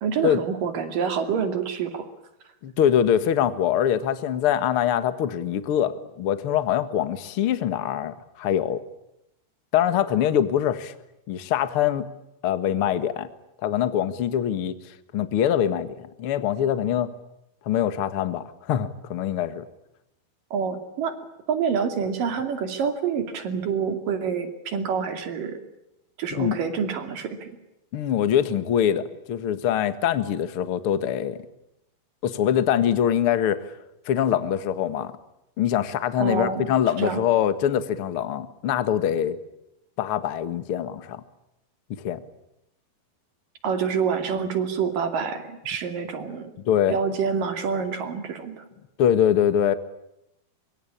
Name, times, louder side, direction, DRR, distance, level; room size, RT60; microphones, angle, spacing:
voice 1, 0.0-2.1 20.5-21.2 21.5-25.6 26.2-27.6 36.2-36.7 37.0-37.2 43.6-46.5 46.9-48.6, right 6 dB, 60° right, 8 dB, 4.1 m, -27 dB
voice 2, 2.6-8.8 9.7-10.9 11.3-12.1 12.4-13.3 13.6-14.8 15.1-17.1 17.7-19.7 26.4-26.6 27.9-31.4 32.2-33.7 34.1-35.1 35.6-39.4 40.0-41.2 42.0-42.2 46.7-47.0 49.0-49.7, left 10 dB, 50° left, 12 dB, 1.8 m, -23 dB
24.5 x 24.5 x 8.7 m, 0.86 s
omnidirectional pair, 4.5 m